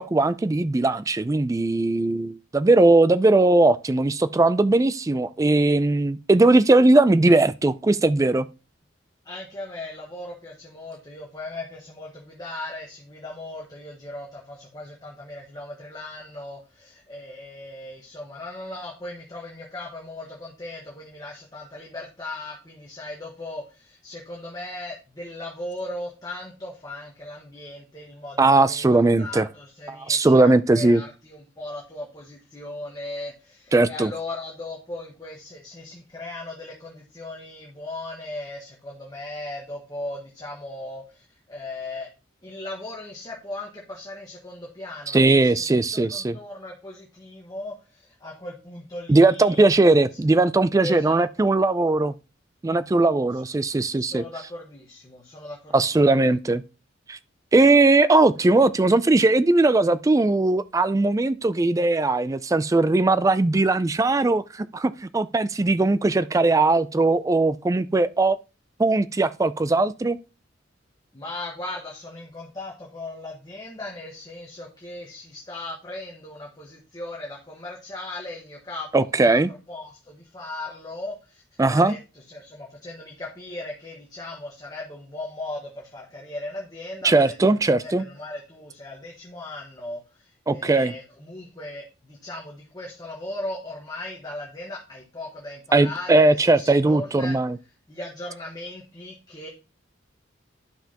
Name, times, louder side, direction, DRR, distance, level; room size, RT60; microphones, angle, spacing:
voice 1, 0.0-8.5 28.4-29.5 29.9-31.0 33.7-34.1 45.1-46.4 49.1-52.1 52.6-54.2 55.7-56.6 57.1-57.2 57.5-68.4 68.8-70.2 78.9-79.5 81.6-81.9 87.0-88.0 90.5-90.9 95.7-97.6, right 2 dB, 15° right, 0.3 m, -19 dB
voice 2, 9.2-28.8 29.2-42.1 42.4-45.6 45.9-49.8 50.1-50.2 50.8-51.2 54.0-55.9 71.1-87.5 87.8-97.4 97.9-99.5, left 2 dB, 20° left, 1.4 m, -38 dB
11.5 x 5.7 x 2.9 m
head